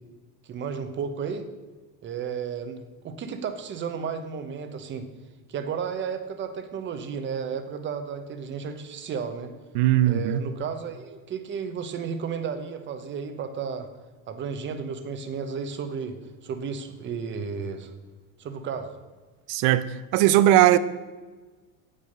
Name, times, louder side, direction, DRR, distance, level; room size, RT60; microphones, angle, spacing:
voice 1, 0.5-1.5 2.0-2.8 3.0-5.1 5.5-9.5 10.0-13.9 14.3-16.2 16.4-17.9 18.4-18.9, right 6 dB, 30° right, 0.9 m, -33 dB
voice 2, 9.7-10.4 19.5-20.8, right 13 dB, 55° right, 0.6 m, -19 dB
8.8 x 8.5 x 5.3 m
cardioid pair, 155°, 40 cm